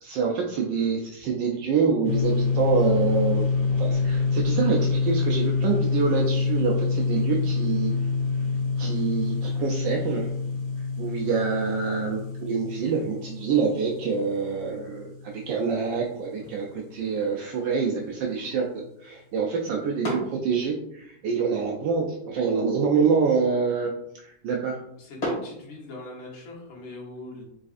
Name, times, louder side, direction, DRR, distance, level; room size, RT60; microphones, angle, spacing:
voice 1, 0.0-3.5 3.8-7.9 8.8-10.3 11.0-24.8, right 5 dB, 75° right, 0 dB, 1.2 m, -26 dB
sound 1, 2.0-15.5, left 4 dB, 50° left, 0.8 m, -26 dB
sound 2, 16.3-26.3, equal, 35° left, 2.2 m, -40 dB
voice 2, 25.0-27.4, left 2 dB, 80° left, -3 dB, 2.0 m, -41 dB
4.9 x 4.1 x 2.5 m, 0.77 s
omnidirectional pair, 2.2 m